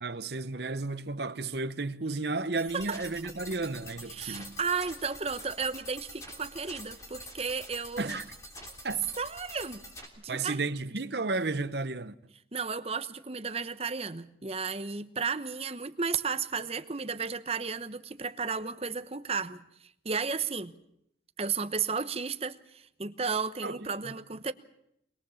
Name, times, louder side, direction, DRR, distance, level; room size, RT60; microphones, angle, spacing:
voice 1, 0.0-4.6 8.0-8.2 8.8-9.1 10.3-12.1 23.6-24.4, right 3 dB, 65° right, 1.0 m, -33 dB
sound 1, 2.6-10.1, equal, 15° left, 3.2 m, -46 dB
voice 2, 4.1-8.2 9.2-9.8 10.2-10.6 12.5-19.6 20.0-20.7 21.4-24.5, right 5 dB, 35° right, 1.0 m, -33 dB
23.5 x 21.5 x 7.2 m
head